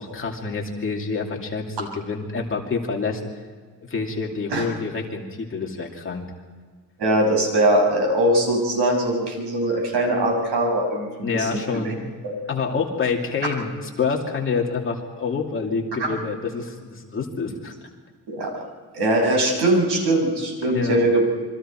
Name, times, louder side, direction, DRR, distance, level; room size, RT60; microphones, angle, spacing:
voice 1, 0.0-3.2 3.8-6.3 11.2-11.9 12.5-17.7 20.6-21.0, left 4 dB, 30° left, 0 dB, 2.7 m, -27 dB
voice 2, 7.0-11.5 11.8-11.9 12.2-12.3 16.0-16.2 18.3-18.5 18.9-21.2, right 1 dB, 70° right, 1 dB, 7.0 m, -21 dB
28.0 x 24.0 x 4.5 m, 1.5 s
cardioid pair, 170°, 41 cm